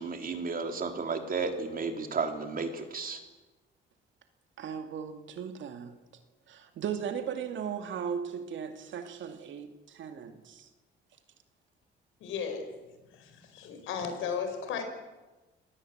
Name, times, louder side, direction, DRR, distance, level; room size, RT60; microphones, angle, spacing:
voice 1, 0.0-3.2, right 4 dB, 45° right, 5 dB, 3.6 m, -33 dB
voice 2, 4.6-6.0 6.5-10.7, right 7 dB, 70° right, 7 dB, 2.4 m, -37 dB
voice 3, 12.2-12.7 13.1-14.8, left 6 dB, 85° left, 6 dB, 4.8 m, -35 dB
26.5 x 18.0 x 8.0 m, 1.2 s
cardioid pair, 90°, 20 cm